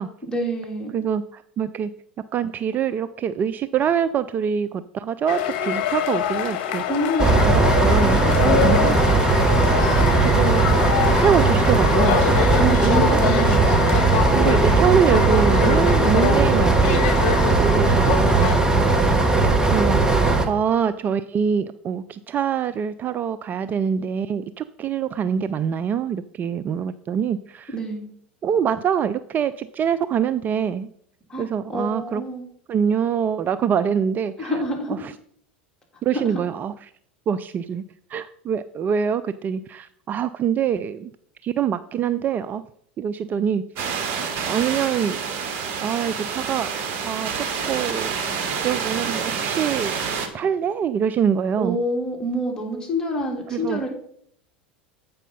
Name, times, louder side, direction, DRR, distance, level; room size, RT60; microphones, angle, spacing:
voice 1, 0.3-0.9 6.9-7.3 8.4-9.0 12.3-14.2 27.7-28.1 31.3-32.4 34.4-35.0 36.1-36.4 51.6-53.9, right 1 dB, 10° left, -1 dB, 3.0 m, -27 dB
voice 2, 0.9-1.9 2.3-6.8 7.4-8.9 10.2-10.6 11.1-12.2 12.6-13.2 14.3-17.1 17.5-18.5 19.7-27.7 28.4-30.9 31.4-32.2 32.7-34.5 35.0-35.1 36.0-36.7 37.3-37.8 38.1-41.1 41.4-42.6 43.0-43.6 44.4-45.2 45.8-46.7 47.0-48.1 48.5-49.9 50.3-51.8 53.5-53.8, right 8 dB, 30° right, 13 dB, 0.4 m, -24 dB
sound 1, 5.3-18.6, left 9 dB, 60° left, 1.1 m, -25 dB
sound 2, 7.2-20.5, right 3 dB, 10° right, 1.3 m, -18 dB
sound 3, 43.8-50.3, right 6 dB, 50° right, 1.4 m, -28 dB
8.2 x 5.4 x 5.4 m, 0.66 s
hypercardioid pair, 85°, 6 cm